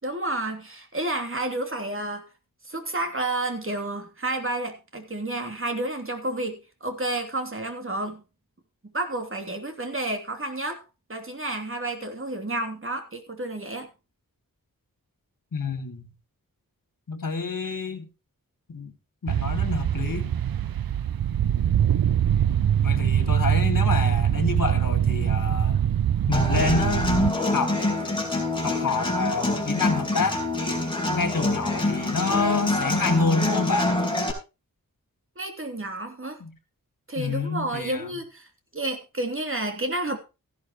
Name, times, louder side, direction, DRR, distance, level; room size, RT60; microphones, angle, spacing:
voice 1, 0.0-2.2 2.6-8.2 8.9-10.8 11.1-13.9 35.4-36.4 37.1-40.2, right 2 dB, 35° right, 3.1 m, -30 dB
voice 2, 15.5-16.0 17.1-18.1 18.7-18.9 19.2-20.3 22.8-25.9 26.3-27.1 27.5-27.8 28.6-30.4 31.1-34.0 36.4-36.5 37.2-38.1, left 4 dB, 60° left, 2.5 m, -28 dB
sound 1, 19.3-27.3, right 10 dB, 85° right, 0.6 m, -23 dB
Human voice / Acoustic guitar, 26.3-34.3, left 2 dB, 15° left, 4.8 m, -26 dB
15.5 x 11.0 x 3.0 m
wide cardioid pair, 80°, 35 cm